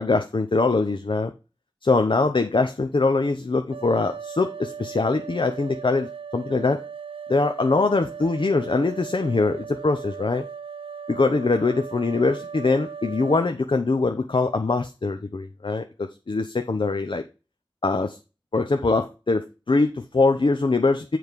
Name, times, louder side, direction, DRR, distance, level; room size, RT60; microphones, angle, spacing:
voice 1, 0.0-1.3 1.8-6.8 7.3-10.5 11.1-17.2 17.8-18.2 18.5-21.2, left 3 dB, 65° left, 6 dB, 0.7 m, -23 dB
sound 1, 3.7-13.5, right 6 dB, 90° right, 0.5 m, -38 dB
7.8 x 4.7 x 5.2 m, 0.30 s
wide cardioid pair, 60°, 9 cm